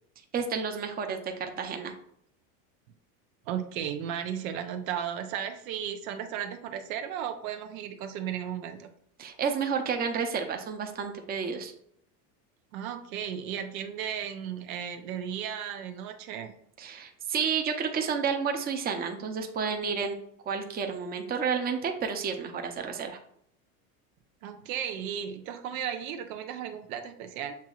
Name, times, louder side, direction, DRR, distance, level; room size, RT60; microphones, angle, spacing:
voice 1, 0.3-1.9 9.2-11.7 16.8-20.2 20.5-23.2, right 6 dB, 20° right, 4 dB, 0.6 m, -31 dB
voice 2, 3.5-8.9 12.7-16.5 24.4-27.6, right 9 dB, 85° right, 6 dB, 0.7 m, -35 dB
7.2 x 3.0 x 2.4 m, 0.70 s
supercardioid pair, 115°, 41 cm